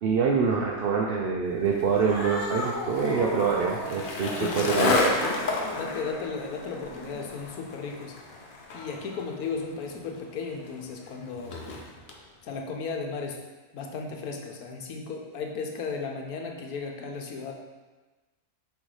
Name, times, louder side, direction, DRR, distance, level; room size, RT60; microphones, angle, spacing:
voice 1, 0.0-5.0, right 5 dB, 65° right, -2 dB, 0.6 m, -25 dB
Skateboard, 1.7-12.2, left 2 dB, 50° left, 0.7 m, -32 dB
Cat, 1.8-7.4, left 2 dB, 65° left, 1.5 m, -38 dB
voice 2, 4.4-4.7 5.7-8.1 8.7-11.6 12.4-13.4 13.7-17.5, left 4 dB, 80° left, 2 dB, 1.3 m, -35 dB
6.2 x 3.2 x 4.8 m, 1.2 s
omnidirectional pair, 1.5 m